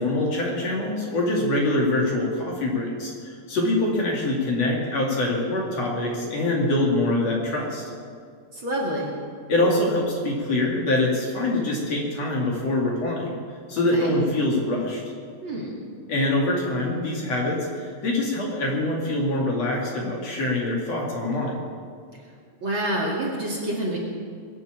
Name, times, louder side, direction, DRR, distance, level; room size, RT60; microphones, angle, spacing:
voice 1, 0.0-7.8 9.5-13.3 13.7-15.0 16.1-21.6, left 1 dB, 50° left, -2 dB, 3.3 m, -24 dB
voice 2, 8.5-9.1 13.9-14.1 15.4-15.7 22.6-24.0, right 1 dB, 40° right, -4 dB, 2.9 m, -27 dB
22.0 x 7.4 x 8.6 m, 2.1 s
omnidirectional pair, 3.9 m